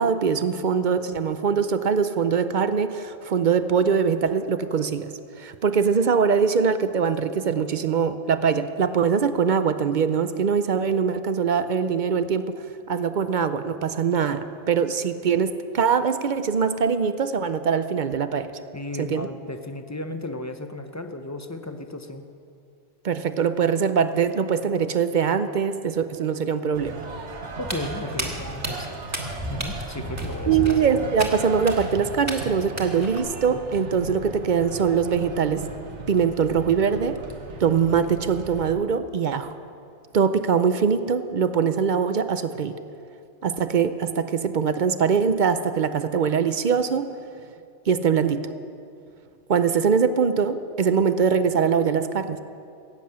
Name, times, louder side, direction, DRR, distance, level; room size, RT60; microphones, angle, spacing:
voice 1, 0.0-5.1 5.4-12.5 12.9-18.5 19.0-19.3 23.0-27.0 30.5-35.6 36.1-37.2 37.6-39.6 40.1-42.7 43.4-47.1 47.9-48.4 49.5-52.4, right 6 dB, 50° right, 11 dB, 0.6 m, -22 dB
voice 2, 18.7-22.2 27.6-29.0 29.5-30.8, left 2 dB, 20° left, 7 dB, 0.6 m, -34 dB
sound 1, 26.7-38.7, right 3 dB, 75° right, 1.6 m, -37 dB
Walk footsteps, 27.6-33.2, equal, 15° right, 1.8 m, -33 dB
17.0 x 7.6 x 8.6 m, 2.4 s
omnidirectional pair, 1.2 m